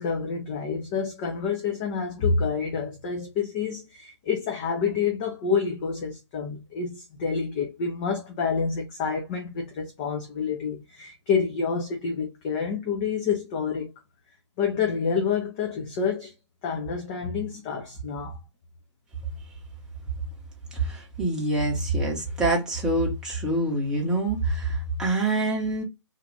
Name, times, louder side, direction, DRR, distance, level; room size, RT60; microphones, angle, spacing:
voice 1, 0.0-13.9 14.6-16.3 16.6-18.4, left 5 dB, 15° left, 0.4 m, -28 dB
voice 2, 20.7-25.8, right 2 dB, 5° right, 0.7 m, -26 dB
2.5 x 2.4 x 3.0 m
figure-of-eight pair, 140°, 15 cm